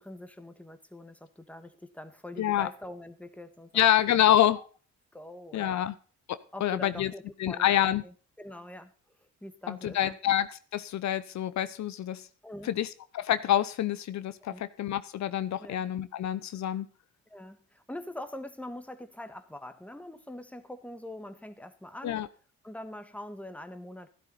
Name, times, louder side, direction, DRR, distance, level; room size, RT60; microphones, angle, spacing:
voice 1, 0.0-4.2 4.6-4.7 5.1-5.8 6.5-8.9 9.2-10.2 12.4-12.8 14.4-14.6 15.6-15.8 17.3-22.3 22.6-24.1, left 1 dB, 5° left, 9 dB, 1.7 m, -44 dB
voice 2, 2.4-2.7 3.7-4.6 5.5-5.9 6.3-7.1 7.4-8.0 9.7-12.2 12.6-12.9 13.1-16.9 22.0-22.3, left 11 dB, 65° left, 13 dB, 0.9 m, -27 dB
13.0 x 12.0 x 4.1 m, 0.38 s
cardioid pair, 90°, 30 cm